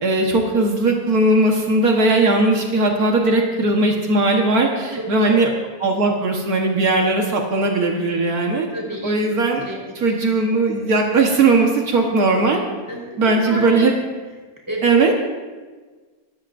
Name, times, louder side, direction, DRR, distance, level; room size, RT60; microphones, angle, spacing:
voice 1, 0.0-5.5 5.8-8.7 9.0-9.6 10.0-12.6 13.2-13.9 14.8-15.1, right 2 dB, 75° right, 0 dB, 1.9 m, -18 dB
voice 2, 5.0-5.5 8.7-9.1 9.7-10.0 10.5-10.8 12.9-13.9 14.7-15.1, right 1 dB, 10° right, -3 dB, 4.3 m, -31 dB
26.0 x 13.0 x 2.6 m, 1.4 s
omnidirectional pair, 1.6 m